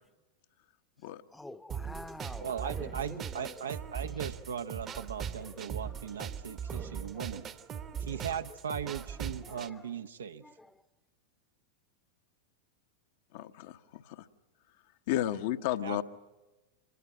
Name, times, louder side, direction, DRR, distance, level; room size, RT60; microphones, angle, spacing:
voice 1, 1.3-3.5 4.9-5.0 5.4-5.9 6.5-6.9 7.9-8.1 9.4-9.9 10.4-10.7, left 2 dB, 5° left, 0.9 m, -48 dB
sound 1, 1.7-9.7, right 8 dB, 30° right, 1.1 m, -40 dB
voice 2, 2.4-7.4 8.0-10.4 15.8-16.0, right 7 dB, 70° right, 0.9 m, -38 dB
voice 3, 13.3-14.3 15.1-16.0, left 12 dB, 50° left, 0.9 m, -33 dB
25.5 x 20.5 x 9.5 m
figure-of-eight pair, 90°, 0 cm